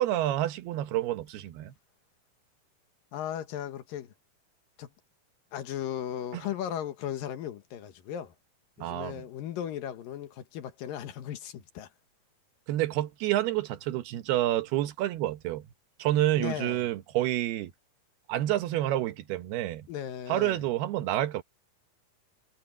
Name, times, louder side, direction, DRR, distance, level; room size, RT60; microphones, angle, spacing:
voice 1, 0.0-1.7 6.3-6.4 8.8-9.2 12.7-15.7 16.0-17.7 18.3-19.9 20.3-21.4, right 14 dB, 90° right, 3.1 m, -28 dB
voice 2, 3.1-4.1 4.8-4.9 5.5-8.3 8.8-11.9 16.4-16.9 19.9-20.6, left 10 dB, 70° left, 2.9 m, -36 dB
omnidirectional pair, 4.4 m